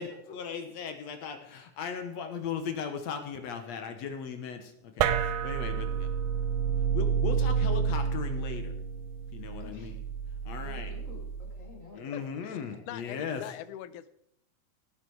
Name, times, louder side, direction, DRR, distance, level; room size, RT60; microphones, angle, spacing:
voice 1, 0.0-6.1 6.9-8.7 9.3-10.0 10.5-10.9 11.9-13.4, left 6 dB, 65° left, 7 dB, 2.3 m, -37 dB
sound 1, 5.0-11.7, right 6 dB, 85° right, 2.4 m, -30 dB
voice 2, 9.5-9.9 10.6-12.3 12.7-12.8, left 3 dB, 25° left, -1 dB, 3.4 m, -50 dB
voice 3, 12.1-12.6 12.9-14.1, left 12 dB, 80° left, 15 dB, 2.2 m, -42 dB
18.5 x 8.3 x 4.8 m, 0.74 s
omnidirectional pair, 3.6 m